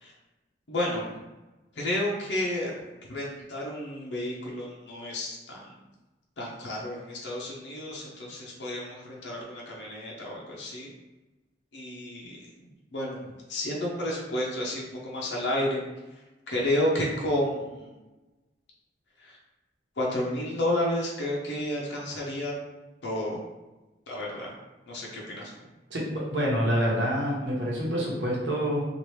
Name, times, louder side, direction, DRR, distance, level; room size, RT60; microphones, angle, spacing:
voice 1, 0.7-1.1 1.8-2.7 3.1-5.6 6.4-10.9 11.7-12.4 12.9-13.2 13.5-15.8 16.5-18.0 19.2-19.4 20.0-22.5 23.0-23.4 24.1-24.5 24.9-25.5, left 1 dB, 75° left, -3 dB, 0.7 m, -31 dB
voice 2, 25.9-28.9, equal, 85° right, -4 dB, 1.0 m, -27 dB
3.0 x 2.4 x 3.1 m, 1.1 s
head